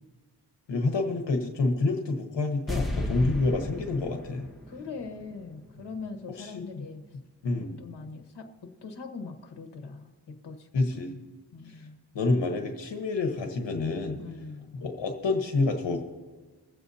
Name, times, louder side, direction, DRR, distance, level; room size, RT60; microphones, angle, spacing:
voice 1, 0.7-4.5 6.4-6.9 7.4-7.8 10.7-11.2 11.7-11.9 12.1-14.2 14.8-16.0, left 3 dB, 80° left, 4 dB, 1.2 m, -28 dB
sound 1, 2.7-5.9 6.1-6.2, left 1 dB, ahead, 1.4 m, -34 dB
voice 2, 3.0-3.4 4.7-7.0 7.5-10.7 11.5-12.0 14.2-14.7, left 4 dB, 65° left, 4 dB, 1.3 m, -42 dB
23.0 x 7.9 x 2.8 m, 1.3 s
wide cardioid pair, 90°, 43 cm